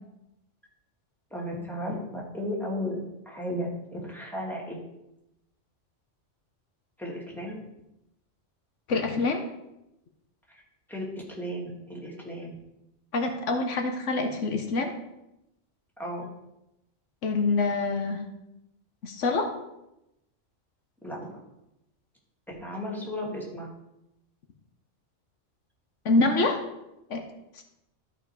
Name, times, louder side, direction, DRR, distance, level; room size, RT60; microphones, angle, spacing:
voice 1, 1.3-3.0 3.3-4.8 7.0-7.6 10.5-10.6 10.9-11.0 11.4-12.6 16.0-16.3 21.0-21.3 22.5-23.7, equal, ahead, -4 dB, 2.3 m, -34 dB
voice 2, 8.9-9.4 13.1-14.9 17.2-18.2 19.0-19.5 26.0-26.6 27.1-27.2, left 3 dB, 80° left, 5 dB, 1.3 m, -25 dB
13.0 x 4.8 x 4.8 m, 0.88 s
omnidirectional pair, 1.2 m